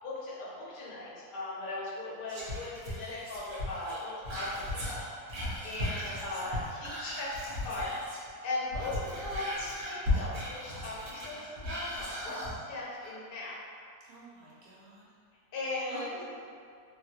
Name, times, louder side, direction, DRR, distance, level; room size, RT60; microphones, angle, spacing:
voice 1, 0.0-4.9 5.3-5.4 5.6-7.9 8.4-13.6 15.5-16.2, left 2 dB, 55° left, -6 dB, 0.5 m, -38 dB
Whispering, 2.3-8.3 8.6-12.5 13.0-13.1, left 1 dB, 55° right, 1.0 m, -36 dB
voice 2, 5.8-6.1 14.1-15.1 15.9-16.2, right 3 dB, 80° right, -8 dB, 1.3 m, -48 dB
3.1 x 2.3 x 2.7 m, 2.2 s
omnidirectional pair, 1.7 m